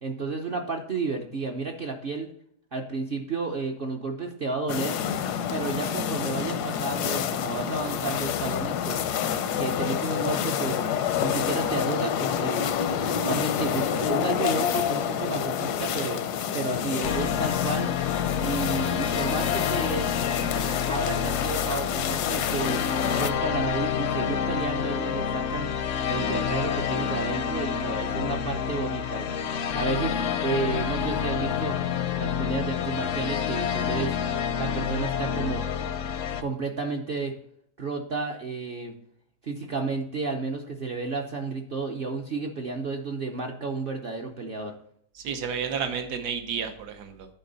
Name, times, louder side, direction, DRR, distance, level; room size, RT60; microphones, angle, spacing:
voice 1, 0.0-2.3 2.7-5.0 5.5-9.0 9.6-10.8 11.2-12.7 13.2-16.2 16.5-17.9 18.4-20.1 20.9-22.8 23.2-25.7 26.1-29.3 29.7-30.1 30.4-31.8 32.2-34.2 34.6-35.7 36.4-37.3 37.8-38.9 39.4-44.7, right 3 dB, 50° right, 2 dB, 0.7 m, -31 dB
sound 1, 4.7-23.3, left 8 dB, 85° left, 1.2 m, -28 dB
sound 2, 17.0-36.4, left 8 dB, 65° left, 0.7 m, -28 dB
voice 2, 45.1-47.3, right 7 dB, 80° right, 7 dB, 1.5 m, -31 dB
10.5 x 4.5 x 3.9 m, 0.68 s
omnidirectional pair, 1.7 m